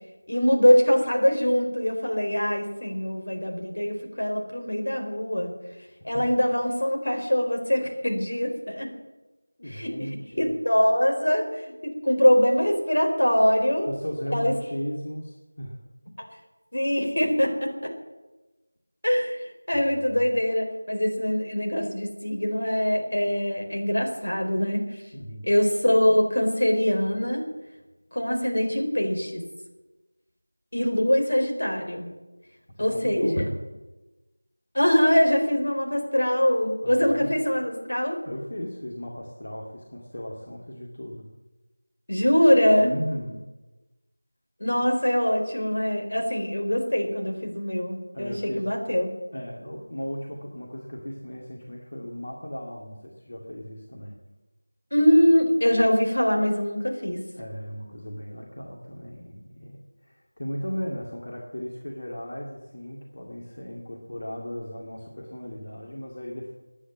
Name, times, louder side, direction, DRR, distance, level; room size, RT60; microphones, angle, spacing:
voice 1, 0.3-5.5 6.0-8.9 9.7-9.9 10.4-13.9 14.3-14.5 16.2-16.3 16.7-17.9 19.0-24.8 25.4-27.4 28.1-29.4 30.7-32.1 32.8-33.4 34.7-38.2 42.1-42.9 44.6-49.1 54.9-57.2, equal, 65° left, 3 dB, 4.3 m, -23 dB
voice 2, 9.6-10.5 13.9-15.8 19.7-20.2 25.1-25.5 32.8-33.6 36.8-37.3 38.3-41.3 42.8-43.4 48.1-48.7 49.3-54.2 57.3-66.5, equal, 40° left, -2 dB, 2.3 m, -36 dB
19.5 x 9.9 x 7.3 m, 1.1 s
figure-of-eight pair, 175°, 0 cm